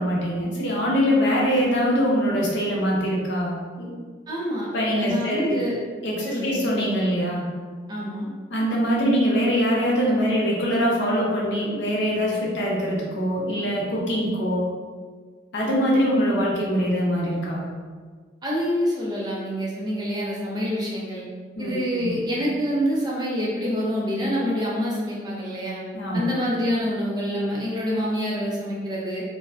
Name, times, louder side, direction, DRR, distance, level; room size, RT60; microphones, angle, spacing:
voice 1, 0.0-3.9 4.7-5.6 6.0-7.5 8.5-14.7 15.5-17.7 21.6-22.2 25.9-26.2, equal, 80° left, -4 dB, 0.6 m, -23 dB
voice 2, 4.3-4.7 4.9-5.8 6.2-6.6 7.9-8.3 18.4-21.2 21.6-25.8 26.1-29.2, equal, 20° right, -5 dB, 0.5 m, -26 dB
2.5 x 2.1 x 2.3 m, 1.5 s
head